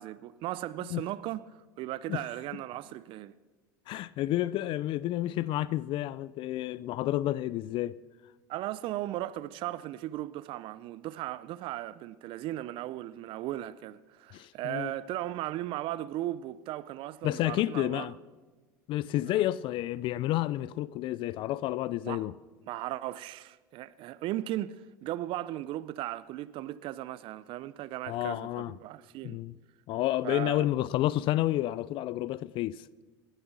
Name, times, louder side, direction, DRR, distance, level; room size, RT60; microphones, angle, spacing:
voice 1, 0.0-1.4 1.8-3.3 8.5-18.1 19.3-19.4 22.0-22.3 22.7-29.4 30.2-30.7, right 14 dB, 50° right, 0.5 m, -37 dB
voice 2, 3.9-7.9 14.3-14.9 17.2-18.1 18.9-22.3 28.1-28.7 29.2-29.5 29.9-32.8, left 15 dB, 50° left, 0.4 m, -30 dB
18.5 x 9.9 x 6.1 m
hypercardioid pair, 90°, 11 cm